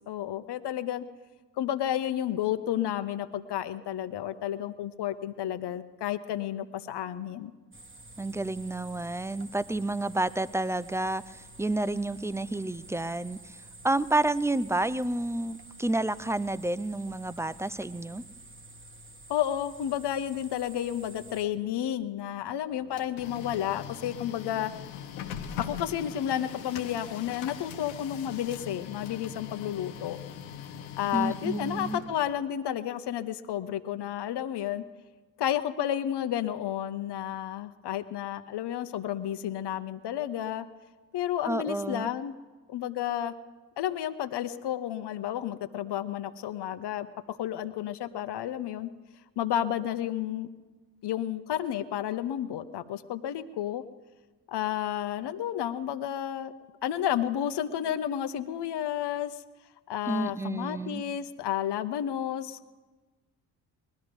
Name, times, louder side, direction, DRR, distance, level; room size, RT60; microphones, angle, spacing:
voice 1, 0.1-1.0 1.6-7.5 19.3-24.7 25.6-30.2 31.0-34.8 35.4-40.6 41.1-42.3 42.7-43.3 43.8-48.9 49.4-50.5 51.0-53.8 54.5-56.5 56.8-59.3 59.9-62.8, left 11 dB, 55° left, 10 dB, 1.0 m, -31 dB
sound 1, 7.7-21.5, right 2 dB, 25° right, 1.7 m, -50 dB
voice 2, 8.2-13.6 13.8-18.2 31.1-32.0 41.4-42.1 60.1-61.0, right 2 dB, 5° right, 17 dB, 0.4 m, -30 dB
Printer, 22.7-32.5, left 9 dB, 85° left, 1.0 m, -41 dB
20.0 x 12.5 x 5.2 m, 1.3 s
hypercardioid pair, 50°, 48 cm